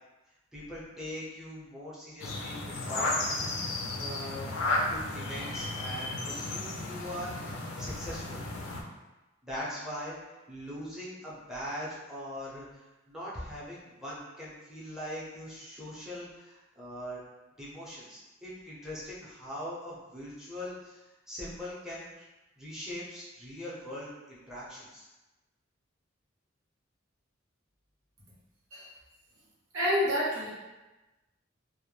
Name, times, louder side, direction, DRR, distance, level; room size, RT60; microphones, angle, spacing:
voice 1, 0.5-4.5 4.9-8.4 9.4-10.2 10.5-12.8 13.1-17.2 17.6-22.3 22.6-25.1, equal, 5° right, -8 dB, 0.6 m, -41 dB
sound 1, 2.2-8.8, left 2 dB, 90° left, 0.4 m, -34 dB
voice 2, 29.7-30.5, equal, 85° right, -7 dB, 1.0 m, -28 dB
2.2 x 2.1 x 3.1 m, 1.1 s
head